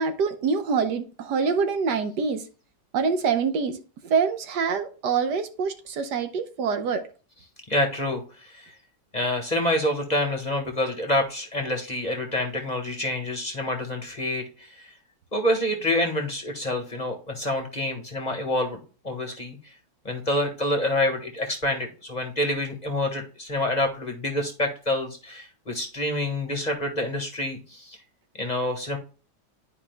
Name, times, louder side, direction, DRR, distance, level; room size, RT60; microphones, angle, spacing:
voice 1, 0.0-2.4 2.9-7.1, right 5 dB, 75° right, 1.4 m, -25 dB
voice 2, 7.7-8.7 9.1-14.9 15.3-18.8 19.0-19.6 20.0-28.0 28.4-29.0, left 1 dB, 25° left, 1.4 m, -27 dB
11.5 x 4.8 x 2.2 m
omnidirectional pair, 1.9 m